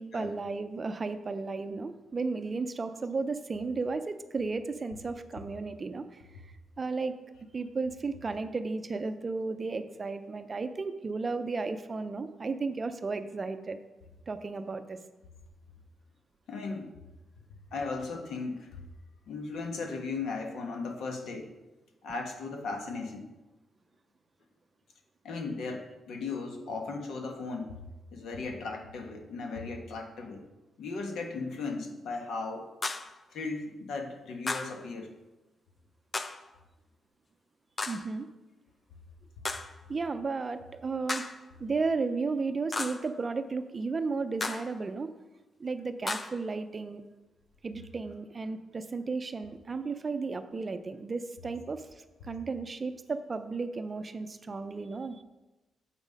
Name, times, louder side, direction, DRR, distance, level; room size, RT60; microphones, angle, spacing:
voice 1, 0.0-6.2 6.8-7.2 7.5-13.8 14.3-15.0 37.9-38.3 39.9-41.3 41.6-45.1 45.6-47.0 47.6-55.2, right 4 dB, 30° right, 9 dB, 0.5 m, -34 dB
voice 2, 16.5-16.9 17.7-18.8 19.3-21.5 22.0-23.3 25.2-27.8 28.1-30.4 30.8-32.7 33.3-35.1, left 3 dB, 75° left, 3 dB, 1.3 m, -36 dB
sound 1, 32.8-33.2 34.5-34.8 36.1-36.5 37.8-38.1 39.5-39.8 41.1-41.5 42.7-43.1 44.4-44.8 46.1-46.4, left 3 dB, 25° left, 0.5 m, -35 dB
8.0 x 6.2 x 5.2 m, 1.1 s
cardioid pair, 145°, 0 cm